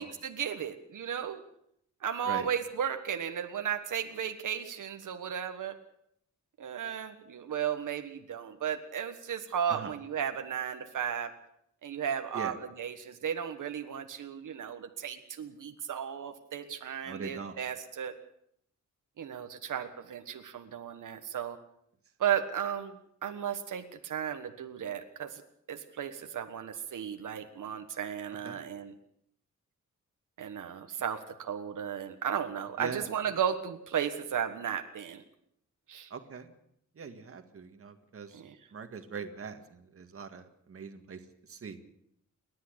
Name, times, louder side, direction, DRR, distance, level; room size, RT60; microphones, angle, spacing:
voice 1, 0.0-1.4 2.0-5.7 6.6-11.3 11.8-18.1 19.2-21.6 22.2-23.0 23.2-25.4 25.7-28.9 30.4-35.2 35.9-36.1 38.3-38.5, right 8 dB, 80° right, 6 dB, 1.5 m, -35 dB
voice 2, 17.0-17.6 28.4-28.6 32.8-33.1 36.1-36.5 37.0-38.4 38.7-41.2 41.5-41.8, right 5 dB, 45° right, 7 dB, 1.9 m, -41 dB
29.0 x 11.5 x 8.1 m, 0.72 s
wide cardioid pair, 160°, 31 cm